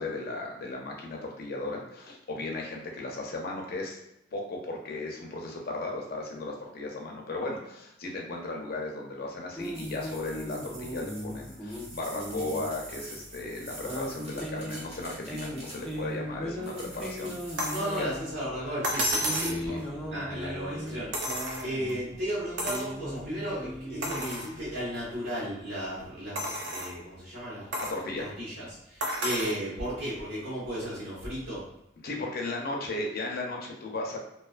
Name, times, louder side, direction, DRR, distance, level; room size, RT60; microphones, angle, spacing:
voice 1, 0.0-4.0 4.3-18.1 19.5-19.8 21.5-21.6 27.8-28.3 32.0-34.2, left 2 dB, 55° left, 0 dB, 0.5 m, -36 dB
sound 1, 9.6-25.1, equal, 5° left, 0.3 m, -38 dB
sound 2, 9.6-16.1 16.6-18.1, right 1 dB, 35° right, 0.8 m, -46 dB
sound 3, 17.6-17.9 18.8-19.6 21.1-21.9 22.6-22.9 23.4-23.5 24.0-24.5 25.1-25.2 26.4-27.0 27.7-28.0 29.0-29.6 30.8-30.9, right 1 dB, 65° right, 0.4 m, -31 dB
voice 2, 17.7-21.3 21.6-27.7 28.2-31.6, equal, 85° right, -11 dB, 0.9 m, -35 dB
2.3 x 2.3 x 2.4 m, 0.85 s
head